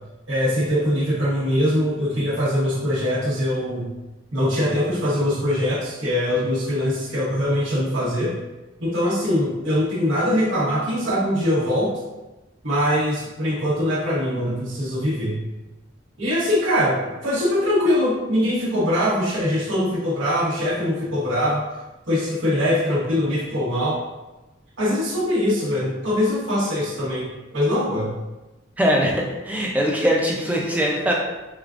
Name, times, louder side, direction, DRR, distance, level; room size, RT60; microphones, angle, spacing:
voice 1, 0.3-3.9 4.3-8.4 8.8-11.9 12.6-15.4 16.2-17.0 17.2-21.6 22.1-24.0 24.8-28.1, left 1 dB, 75° right, -7 dB, 1.1 m, -22 dB
voice 2, 28.8-31.1, equal, 10° right, -2 dB, 0.4 m, -21 dB
4.9 x 2.4 x 2.4 m, 1.1 s
head